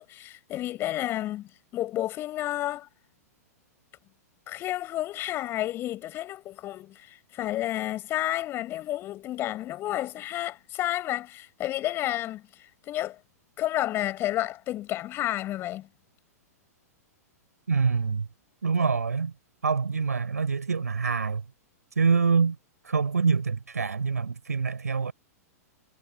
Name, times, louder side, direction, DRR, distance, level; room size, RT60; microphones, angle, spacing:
voice 1, 0.0-2.9 4.5-13.2 13.6-15.9, left 14 dB, 25° left, 4.9 m, -31 dB
voice 2, 17.7-18.3 18.6-19.3 19.6-21.4 22.0-22.6 22.8-25.1, right 5 dB, 70° right, 5.7 m, -25 dB
figure-of-eight pair, 105°, 9 cm